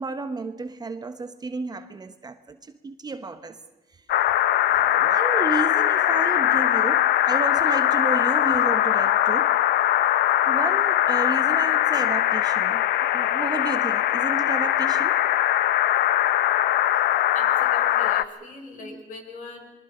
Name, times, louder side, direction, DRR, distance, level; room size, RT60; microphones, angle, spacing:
voice 1, 0.0-3.6 4.2-9.5 10.5-12.8 13.1-15.1 18.0-18.1 18.8-19.0, right 4 dB, 25° right, 1.0 m, -32 dB
sound 1, 4.1-18.2, left 12 dB, 70° left, 0.8 m, -21 dB
voice 2, 17.3-19.7, left 3 dB, 50° left, 5.6 m, -41 dB
28.0 x 22.5 x 5.0 m
cardioid pair, 110°, 17 cm